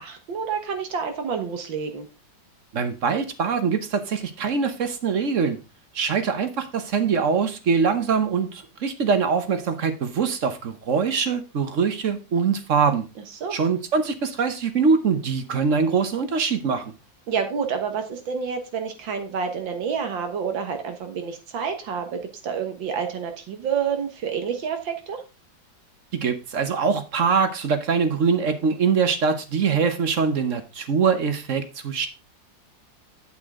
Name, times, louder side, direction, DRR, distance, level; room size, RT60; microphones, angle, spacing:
voice 1, 0.0-2.1 13.3-13.6 17.3-25.2, right 6 dB, 90° right, 2.1 m, -28 dB
voice 2, 2.7-5.6 5.9-13.1 13.5-16.9 26.1-32.1, right 5 dB, 50° right, 1.2 m, -23 dB
8.3 x 7.7 x 3.7 m
omnidirectional pair, 2.0 m